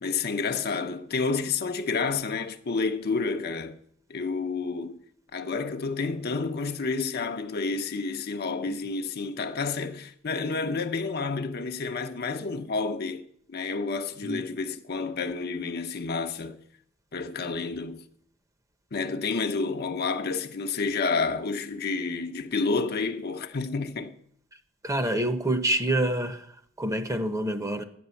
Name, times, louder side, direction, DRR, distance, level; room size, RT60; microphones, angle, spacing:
voice 1, 0.0-3.8 4.1-5.0 5.3-16.6 17.1-18.0 18.9-24.2, left 4 dB, 50° left, 0.7 m, -30 dB
voice 2, 24.8-26.4 26.8-27.8, right 1 dB, 15° right, 0.8 m, -27 dB
11.0 x 8.5 x 7.0 m
head